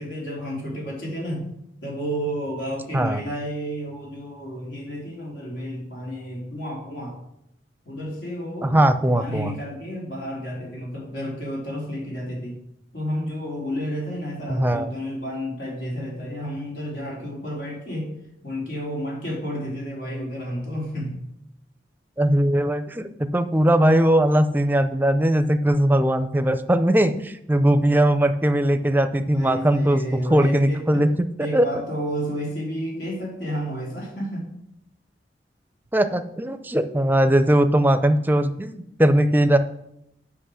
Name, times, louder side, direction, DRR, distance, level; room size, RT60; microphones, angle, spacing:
voice 1, 0.0-1.5 1.8-7.2 7.8-8.8 9.1-12.6 12.9-18.1 18.4-21.2 29.1-31.1 31.4-34.5, equal, 90° left, -3 dB, 3.4 m, -31 dB
voice 2, 8.6-9.5 14.5-14.9 22.2-31.7 35.9-39.6, right 1 dB, 10° right, 10 dB, 0.5 m, -20 dB
8.1 x 6.0 x 6.3 m, 0.79 s
head